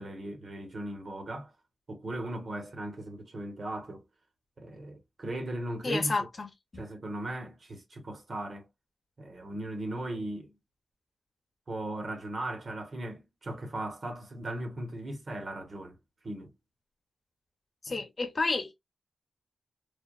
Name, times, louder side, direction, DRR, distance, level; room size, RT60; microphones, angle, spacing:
voice 1, 0.0-1.5 1.9-4.0 4.6-6.3 6.8-8.7 9.2-10.6 11.7-16.0 16.2-16.5 17.9-18.0, right 1 dB, 55° right, 0.9 m, -38 dB
voice 2, 5.8-6.8 17.8-18.7, left 3 dB, 50° left, 0.8 m, -31 dB
3.3 x 2.1 x 2.3 m
wide cardioid pair, 75°, 0 cm